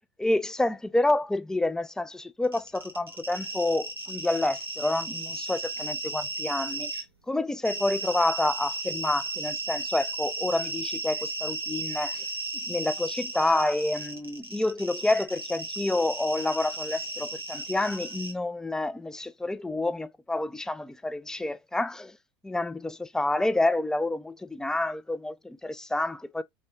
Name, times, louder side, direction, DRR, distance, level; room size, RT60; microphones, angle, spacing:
voice 1, 0.2-12.2 12.6-22.2 22.4-26.4, left 2 dB, 5° left, 0.3 m, -28 dB
sound 1, 2.4-7.0 7.6-18.3, right 3 dB, 90° right, 0.8 m, -35 dB
3.5 x 3.2 x 2.8 m
figure-of-eight pair, 75°, 13 cm